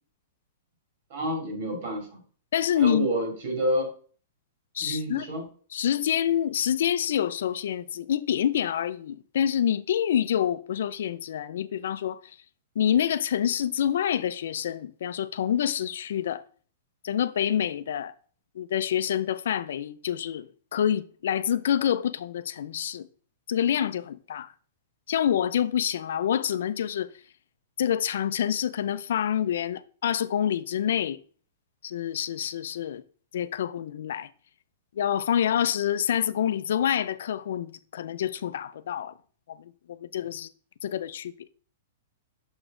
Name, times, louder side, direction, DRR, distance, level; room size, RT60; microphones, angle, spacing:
voice 1, 1.1-2.2 2.8-3.9 4.8-5.5, right 1 dB, 55° right, 2.6 m, -29 dB
voice 2, 2.5-3.1 4.7-5.3 5.7-12.4 12.8-16.4 17.0-18.1 18.6-23.1 23.5-24.5 25.1-27.1 27.8-31.2 31.8-33.0 33.3-34.3 35.0-39.1 39.5-40.5 40.8-41.3, left 9 dB, 75° left, 0.4 m, -27 dB
6.4 x 5.0 x 3.7 m
hypercardioid pair, 150°, 0 cm